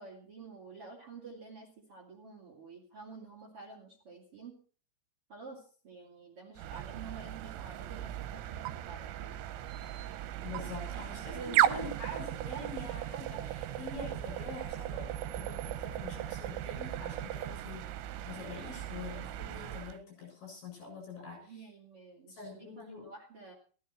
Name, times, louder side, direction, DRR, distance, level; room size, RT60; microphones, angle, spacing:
voice 1, 0.0-4.6 5.3-9.4 11.4-11.9 17.4-17.6 21.3-23.5, right 4 dB, 40° right, 1 dB, 2.4 m, -49 dB
sound 1, 6.6-20.0, right 12 dB, 85° right, 3.1 m, -36 dB
voice 2, 10.4-17.9 18.3-21.7 22.3-23.1, left 3 dB, 60° left, 2 dB, 9.5 m, -45 dB
15.0 x 13.5 x 4.4 m, 0.41 s
omnidirectional pair, 5.2 m